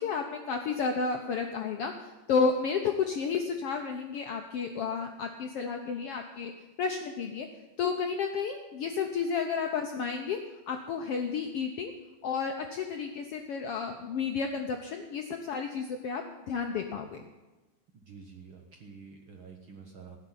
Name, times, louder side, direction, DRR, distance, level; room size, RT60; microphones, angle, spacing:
voice 1, 0.0-6.5 6.8-7.5 7.8-10.4 10.7-11.9 12.2-17.2, left 5 dB, 70° left, 4 dB, 1.4 m, -31 dB
voice 2, 17.9-20.2, right 5 dB, 55° right, 3 dB, 1.6 m, -49 dB
16.5 x 6.6 x 10.0 m, 1.1 s
omnidirectional pair, 3.7 m